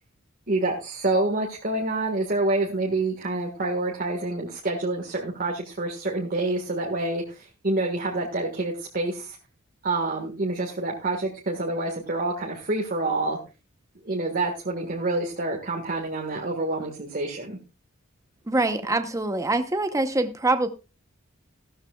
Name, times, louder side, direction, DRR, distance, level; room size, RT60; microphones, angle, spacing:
voice 1, 0.5-9.4 9.8-13.4 14.0-17.6, right 2 dB, 40° right, 1.6 m, -27 dB
voice 2, 18.5-20.7, right 2 dB, 15° right, 0.8 m, -24 dB
15.5 x 12.5 x 2.3 m
head